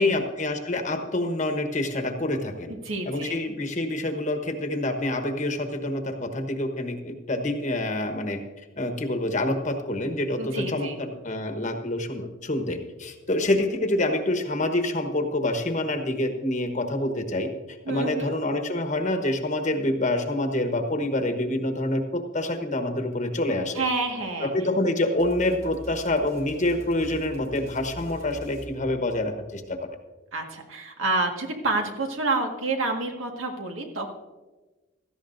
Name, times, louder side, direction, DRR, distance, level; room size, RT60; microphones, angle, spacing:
voice 1, 0.0-2.7 3.1-8.4 8.8-17.5 17.9-23.8 24.4-29.8, left 1 dB, 35° left, 5 dB, 1.1 m, -27 dB
voice 2, 2.7-3.4 10.4-11.0 17.9-18.3 23.7-24.5 30.3-34.1, right 3 dB, 80° right, 2 dB, 1.7 m, -28 dB
sound 1, 25.2-29.5, equal, 35° right, 3.4 m, -43 dB
16.5 x 13.5 x 2.6 m, 1.2 s
head